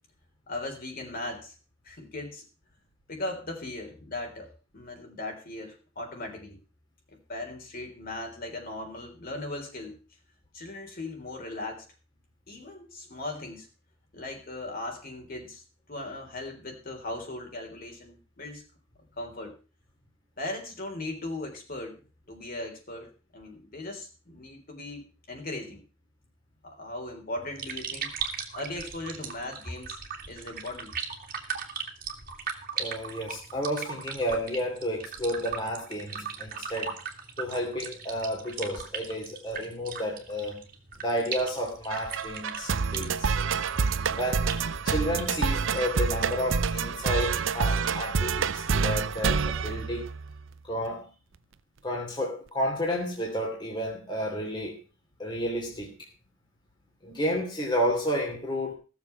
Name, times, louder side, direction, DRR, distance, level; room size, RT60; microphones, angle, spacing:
voice 1, 0.5-1.5 1.8-2.4 3.1-6.6 7.1-10.0 10.5-11.8 12.5-13.7 14.1-15.6 15.9-18.6 19.2-19.5 20.4-22.0 22.3-25.8 26.6-28.1 28.5-30.0 30.3-30.9, left 2 dB, 45° left, 2 dB, 3.8 m, -38 dB
sound 1, 27.4-46.5, right 6 dB, 45° right, 2.3 m, -39 dB
voice 2, 32.8-36.9 37.4-40.6 41.0-43.4 44.1-50.1 50.6-51.1 51.8-54.8 55.2-55.9 57.0-58.7, equal, 25° left, -1 dB, 2.9 m, -31 dB
sound 2, 41.9-50.5, right 5 dB, 65° right, 0.6 m, -28 dB
17.0 x 7.2 x 5.7 m, 0.34 s
head